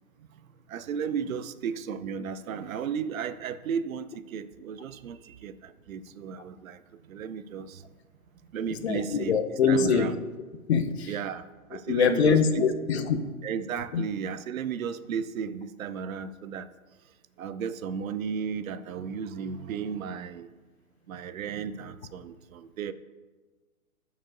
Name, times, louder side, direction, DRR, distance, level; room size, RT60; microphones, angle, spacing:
voice 1, 0.7-6.8 7.1-7.8 8.5-9.4 9.7-10.1 11.1-12.6 13.4-16.7 17.4-20.5 21.1-22.9, right 7 dB, 65° right, 13 dB, 0.6 m, -34 dB
voice 2, 8.7-10.1 10.7-11.1 11.9-13.3 13.9-14.0, left 6 dB, 50° left, 8 dB, 0.7 m, -24 dB
13.0 x 5.1 x 2.5 m, 1.3 s
figure-of-eight pair, 125°, 44 cm